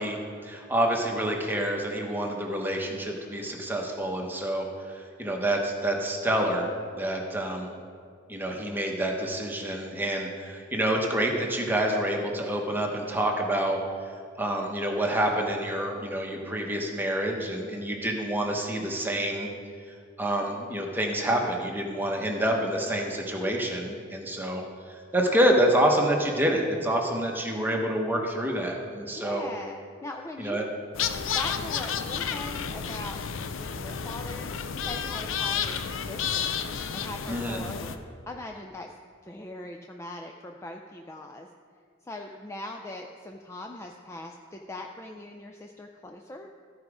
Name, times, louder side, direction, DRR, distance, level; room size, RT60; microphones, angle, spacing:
voice 1, 0.0-6.7 6.9-7.7 8.3-13.8 14.0-14.1 14.4-19.5 20.2-29.5 30.4-30.7 37.3-37.6, right 1 dB, 10° right, 0 dB, 1.0 m, -27 dB
voice 2, 29.1-30.7 31.3-33.2 33.5-34.5 34.7-36.6 36.9-38.0 38.3-38.9 39.2-41.5 42.0-46.5, left 2 dB, 15° left, 2 dB, 0.4 m, -40 dB
sound 1, 30.9-38.0, left 7 dB, 70° left, 0.5 m, -31 dB
13.5 x 4.9 x 4.9 m, 2.2 s
head